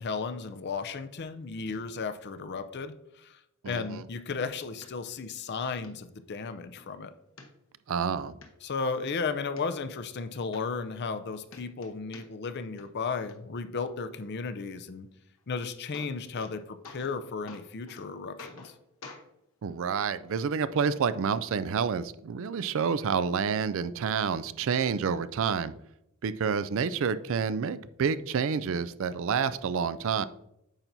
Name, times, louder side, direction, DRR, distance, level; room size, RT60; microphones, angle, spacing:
voice 1, 0.0-3.4 3.7-7.1 8.6-15.1 15.5-18.7, left 4 dB, 50° left, 11 dB, 0.5 m, -34 dB
voice 2, 3.6-4.0 7.9-8.3 19.6-25.7 26.2-30.3, right 6 dB, 60° right, 15 dB, 0.4 m, -29 dB
sound 1, 4.8-4.9 5.4-5.5 5.8-5.9 6.4-6.9 7.4-8.0 8.4-8.5 8.9-9.6 10.2-10.3 10.5-11.2 11.5-12.5 12.8-13.3 15.4-15.5 15.7-16.6 16.8-17.2 17.5-18.0 18.4-18.8 19.0-19.2 20.0-20.1 21.0-21.1, left 3 dB, 65° left, 1.0 m, -48 dB
8.9 x 5.7 x 2.6 m, 0.83 s
head